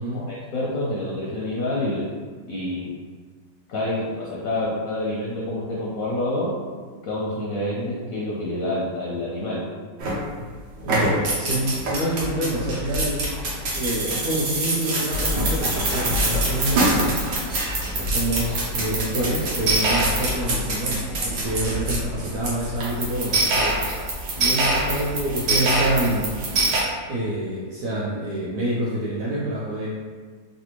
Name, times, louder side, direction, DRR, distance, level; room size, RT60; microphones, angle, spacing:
voice 1, 0.1-2.1 2.5-2.9 3.7-6.5 7.0-9.6, left 1 dB, 65° left, -5 dB, 0.9 m, -27 dB
sound 1, 10.0-10.5 10.8-26.8, right 1 dB, 90° right, 1.5 m, -24 dB
voice 2, 10.8-13.2 13.7-17.3 18.0-24.0 24.4-26.3 27.1-29.9, right 1 dB, 70° right, -8 dB, 1.1 m, -27 dB
3.2 x 2.6 x 2.9 m, 1.5 s
omnidirectional pair, 1.9 m